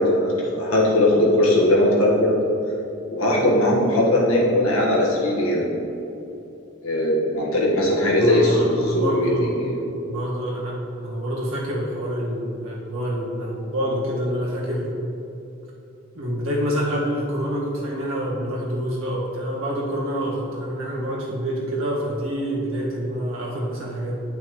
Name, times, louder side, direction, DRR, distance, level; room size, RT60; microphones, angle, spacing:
voice 1, 0.0-2.3 3.1-5.7 6.8-9.8, left 1 dB, 80° left, -4 dB, 1.5 m, -19 dB
voice 2, 8.2-9.7 10.1-10.8 11.0-14.9 16.1-24.2, equal, 75° right, -5 dB, 1.7 m, -27 dB
9.4 x 5.7 x 3.1 m, 2.8 s
head